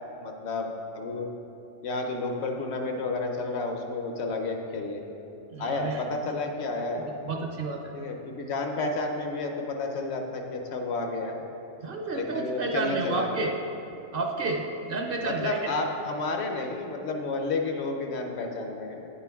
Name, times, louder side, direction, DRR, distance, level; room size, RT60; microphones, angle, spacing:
voice 1, 0.2-1.3 1.8-5.0 5.6-7.1 7.9-11.4 12.1-13.4 15.2-19.1, left 3 dB, 65° left, 3 dB, 1.0 m, -31 dB
voice 2, 5.5-6.0 7.2-8.1 11.8-13.5 14.1-15.6, right 3 dB, 55° right, 2 dB, 0.7 m, -30 dB
9.1 x 6.8 x 3.5 m, 3.0 s
omnidirectional pair, 1.2 m